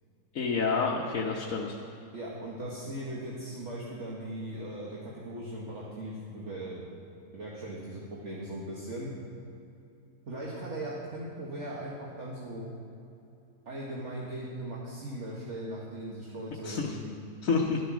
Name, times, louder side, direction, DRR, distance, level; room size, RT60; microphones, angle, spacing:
voice 1, 0.3-1.8 16.6-17.0 17.4-17.8, left 4 dB, 60° left, -2 dB, 1.4 m, -28 dB
voice 2, 2.1-6.9 7.3-9.1 10.3-12.6 13.7-17.1 17.7-17.8, right 1 dB, 50° right, -5 dB, 2.0 m, -39 dB
12.5 x 11.5 x 6.1 m, 2.7 s
omnidirectional pair, 1.6 m